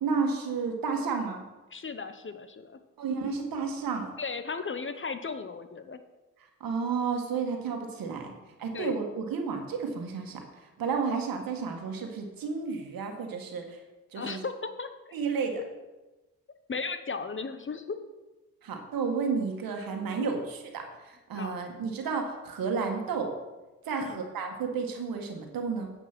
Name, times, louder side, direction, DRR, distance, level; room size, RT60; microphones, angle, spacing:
voice 1, 0.0-1.4 3.0-4.1 6.6-8.3 8.6-13.8 14.1-14.4 15.1-15.6 18.6-23.3 23.8-25.9, right 5 dB, 65° right, 3 dB, 1.7 m, -32 dB
voice 2, 1.7-2.8 4.2-6.0 8.7-9.0 14.1-14.9 16.7-18.0 20.2-20.4 21.3-21.6 24.0-24.2, left 4 dB, 35° left, 9 dB, 1.0 m, -36 dB
9.4 x 5.4 x 6.1 m, 1.1 s
hypercardioid pair, 40°, 37 cm